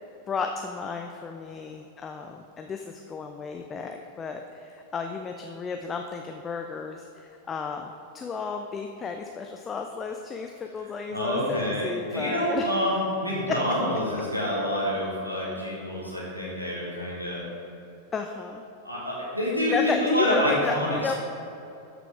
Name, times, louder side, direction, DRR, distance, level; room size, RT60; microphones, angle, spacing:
voice 1, 0.3-12.8 18.1-18.6 19.7-21.1, left 5 dB, 20° left, 4 dB, 0.4 m, -33 dB
voice 2, 11.1-17.4 18.8-21.1, left 1 dB, 90° right, -5 dB, 2.0 m, -27 dB
12.5 x 6.0 x 3.5 m, 2.7 s
figure-of-eight pair, 90°, 0 cm